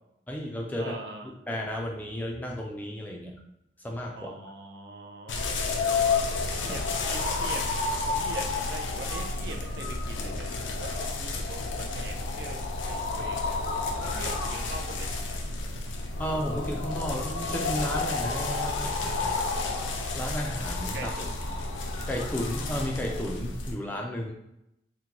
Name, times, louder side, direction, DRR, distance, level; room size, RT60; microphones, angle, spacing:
voice 1, 0.3-1.0 1.2-3.3 3.8-4.3 6.7-6.8 16.2-19.3 20.2-21.1 22.1-24.3, equal, 10° left, 0 dB, 0.3 m, -33 dB
voice 2, 0.8-1.3 4.1-5.5 6.6-7.7 8.0-13.6 13.9-15.1 20.9-21.4, right 2 dB, 60° right, 3 dB, 0.5 m, -42 dB
sound 1, 5.3-23.8, left 3 dB, 85° left, 0.5 m, -31 dB
3.7 x 2.1 x 2.9 m, 0.82 s
head